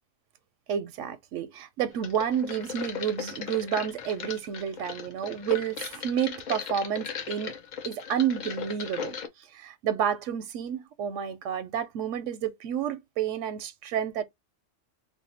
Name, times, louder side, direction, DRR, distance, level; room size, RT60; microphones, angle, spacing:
voice 1, 0.7-7.5 7.9-9.2 9.5-14.2, right 9 dB, 85° right, 1.0 m, -30 dB
sound 1, 2.0-9.3, left 7 dB, 50° left, 0.6 m, -37 dB
2.7 x 2.2 x 4.0 m
omnidirectional pair, 1.2 m